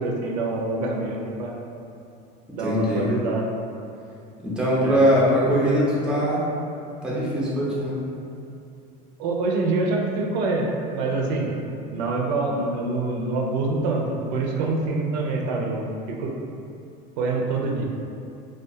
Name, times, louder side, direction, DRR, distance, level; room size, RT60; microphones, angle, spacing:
voice 1, 0.0-1.6 2.5-3.5 4.8-5.0 9.2-11.5 11.9-16.3 17.2-17.9, right 3 dB, 75° right, -1 dB, 0.4 m, -25 dB
voice 2, 2.6-3.1 4.4-6.4 7.0-8.0, equal, 5° right, -6 dB, 0.5 m, -21 dB
2.3 x 2.2 x 2.6 m, 2.6 s
supercardioid pair, 125°, 21 cm